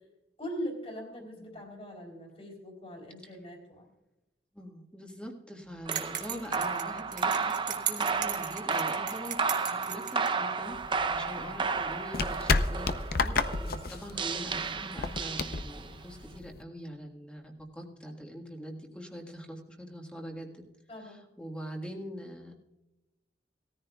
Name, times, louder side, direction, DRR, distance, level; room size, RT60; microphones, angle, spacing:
voice 1, 0.4-3.9 20.9-21.2, equal, 35° left, 2 dB, 3.5 m, -41 dB
voice 2, 1.1-1.6 3.2-3.3 4.5-9.4 9.6-10.8 11.1-20.6 20.9-22.5, equal, 5° left, 1 dB, 1.7 m, -43 dB
sound 1, 5.8-16.0, right 4 dB, 30° right, 0.6 m, -33 dB
sound 2, 5.9-10.3, right 10 dB, 50° right, 1.5 m, -37 dB
sound 3, 10.7-16.6, left 4 dB, 60° left, 0.7 m, -32 dB
18.5 x 14.0 x 2.3 m, 0.98 s
head